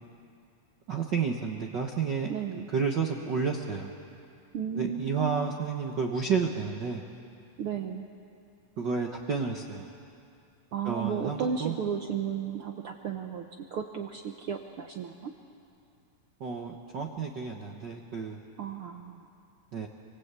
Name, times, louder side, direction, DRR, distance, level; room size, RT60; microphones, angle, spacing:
voice 1, 0.9-2.3 2.7-3.9 4.7-7.0 8.8-9.9 10.8-11.7 16.4-18.4 19.7-19.9, right 5 dB, 60° right, 1 dB, 1.1 m, -31 dB
voice 2, 2.3-2.7 4.5-5.5 7.6-8.1 10.7-15.3 18.6-19.2, right 7 dB, 85° right, 4 dB, 1.2 m, -34 dB
27.5 x 25.5 x 8.3 m, 2.6 s
omnidirectional pair, 3.9 m